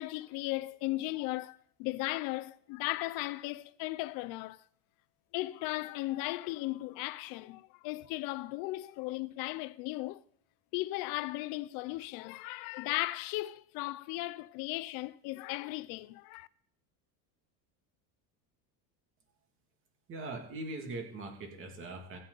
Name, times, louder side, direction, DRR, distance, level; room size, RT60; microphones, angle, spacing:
voice 1, 0.0-4.6 5.3-10.2 10.7-16.5, left 19 dB, 55° left, 0.6 m, -36 dB
voice 2, 20.1-22.2, right 2 dB, 30° right, 2.4 m, -41 dB
24.0 x 8.3 x 4.0 m
cardioid pair, 175°, 41 cm